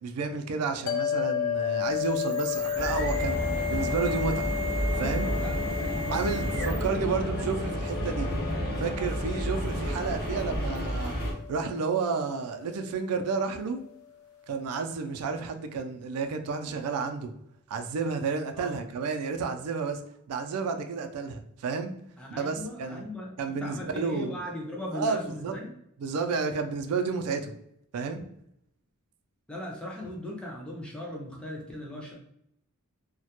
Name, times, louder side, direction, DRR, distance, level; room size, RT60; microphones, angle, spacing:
voice 1, 0.0-3.4 3.7-4.5 5.0-5.4 6.1-8.3 8.8-11.2 11.5-13.8 14.5-17.3 17.7-20.0 20.3-21.9 22.4-23.0 23.4-24.4 24.9-25.5 26.0-27.5 27.9-28.2, right 5 dB, 90° right, 6 dB, 0.3 m, -31 dB
sound 1, 0.9-13.4, left 9 dB, 70° left, 0.4 m, -34 dB
sound 2, 1.8-7.1, right 2 dB, 70° right, 0.7 m, -38 dB
sound 3, 2.7-11.3, equal, 45° left, 0.7 m, -31 dB
voice 2, 5.3-6.7 7.0-7.3 18.5-18.8 22.2-25.7 29.5-32.2, left 1 dB, 5° left, -1 dB, 0.4 m, -38 dB
2.2 x 2.1 x 2.8 m, 0.74 s
head